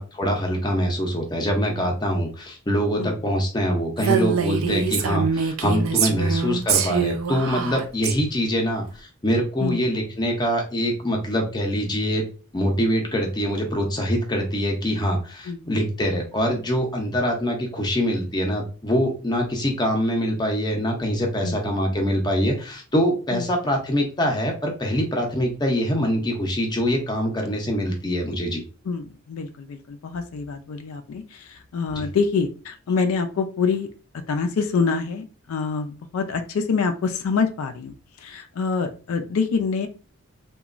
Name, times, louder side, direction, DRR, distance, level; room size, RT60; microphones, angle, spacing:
voice 1, 0.0-12.2 12.5-28.6 31.9-32.1, equal, 20° left, 1 dB, 0.5 m, -24 dB
Female speech woman speaking, 4.0-8.1, right 6 dB, 65° right, 0.4 m, -24 dB
voice 2, 28.9-33.9 34.3-37.9 38.2-39.9, left 5 dB, 75° left, 7 dB, 0.4 m, -26 dB
2.9 x 2.2 x 2.4 m, 0.36 s
head